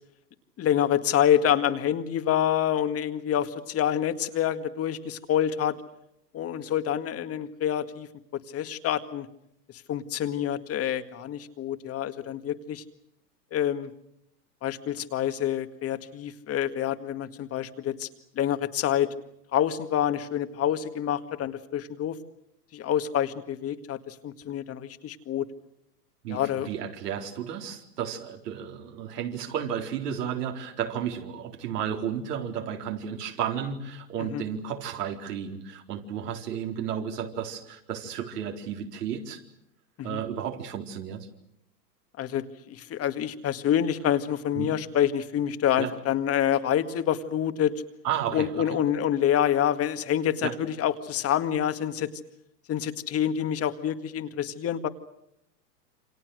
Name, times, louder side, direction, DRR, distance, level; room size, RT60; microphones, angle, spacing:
voice 1, 0.6-5.8 6.3-8.1 8.5-9.3 9.9-12.8 13.5-13.9 14.6-18.1 18.4-19.1 19.5-22.2 22.7-25.5 26.3-26.7 34.2-34.4 40.0-40.2 42.2-47.7 48.3-52.1 52.7-54.9, left 10 dB, 30° left, 9 dB, 2.0 m, -27 dB
voice 2, 26.2-39.4 40.0-41.3 44.5-44.7 45.8-45.9 48.0-48.7 50.4-50.5, right 8 dB, 70° right, 3 dB, 4.4 m, -33 dB
28.5 x 26.0 x 6.5 m, 0.80 s
hypercardioid pair, 110°, 49 cm